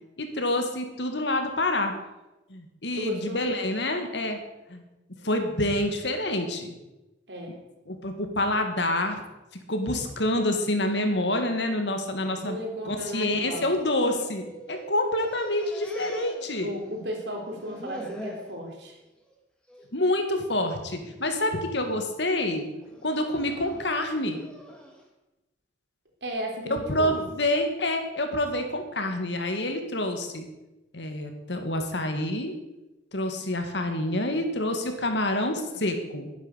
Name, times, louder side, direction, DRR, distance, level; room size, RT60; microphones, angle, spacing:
voice 1, 0.2-1.9 2.5-4.4 4.7-4.8 5.2-6.8 7.9-9.2 9.7-12.6 12.9-16.7 19.9-22.6 23.0-24.4 26.7-30.4 30.9-32.5 33.1-36.3, left 1 dB, 65° left, 5 dB, 2.4 m, -27 dB
voice 2, 2.9-3.4 7.3-7.5 12.2-13.7 16.6-18.9 26.2-27.2, equal, 65° right, 1 dB, 4.0 m, -34 dB
sound 1, 13.8-14.9 15.2-17.1 17.3-18.5 19.0-19.3 19.7-19.9 20.7-21.1 21.6-22.0 22.8-25.0, right 1 dB, 5° left, 2.5 m, -43 dB
12.5 x 10.0 x 8.3 m, 1.0 s
head